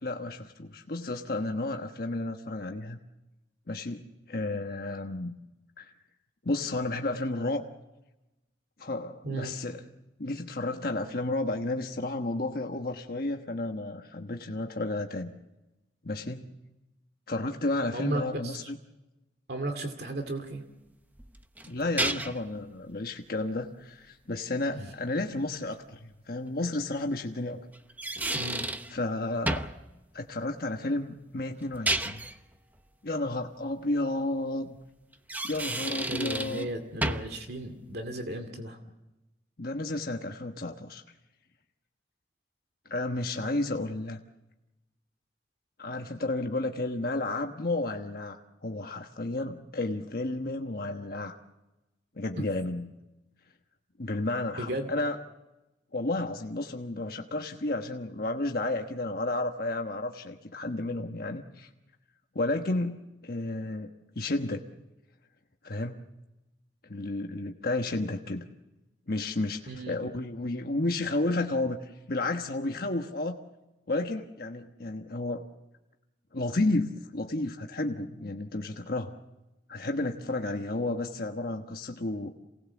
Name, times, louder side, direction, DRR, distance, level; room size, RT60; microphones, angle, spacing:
voice 1, 0.0-3.0 3.7-5.3 5.8-5.9 6.4-7.6 8.8-9.8 10.2-15.3 16.0-16.4 17.3-18.8 21.7-26.0 26.3-27.6 28.9-29.7 30.1-32.3 33.0-34.8 35.4-36.7 39.6-41.0 42.9-44.2 45.8-51.4 52.1-52.9 54.0-55.2 55.9-61.7 62.3-64.6 65.6-66.0 66.8-68.5 69.1-69.6 69.9-73.4 73.9-75.5 76.3-79.1 79.7-82.3, left 2 dB, 55° left, 3 dB, 1.2 m, -32 dB
voice 2, 9.2-9.6 17.9-18.7 19.5-20.6 24.7-24.9 28.3-28.7 36.1-38.8 52.4-52.5 54.6-54.9 69.7-70.0, right 1 dB, 60° right, 6 dB, 2.4 m, -35 dB
sound 1, 21.2-22.5 25.7-25.8 27.7-28.9 29.5-29.8 31.6-32.4 35.1-36.7 37.0-37.4, right 2 dB, 10° right, 0.8 m, -31 dB
28.0 x 19.0 x 7.2 m, 1.0 s
head